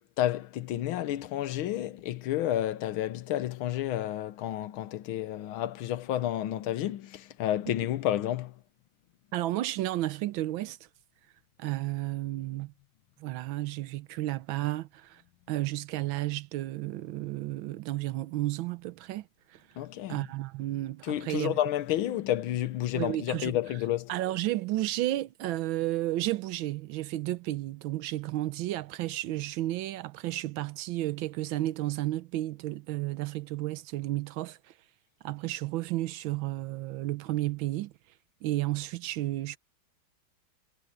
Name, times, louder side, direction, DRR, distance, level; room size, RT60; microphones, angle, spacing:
voice 1, 0.0-8.5 19.8-20.2 21.0-24.1, left 12 dB, 85° left, 1.7 m, -30 dB
voice 2, 9.3-10.8 11.6-12.7 13.2-15.2 15.5-19.6 20.1-21.6 22.9-23.6 24.1-34.6 35.2-37.9 38.4-39.6, right 16 dB, 80° right, 1.4 m, -32 dB
omnidirectional pair, 2.2 m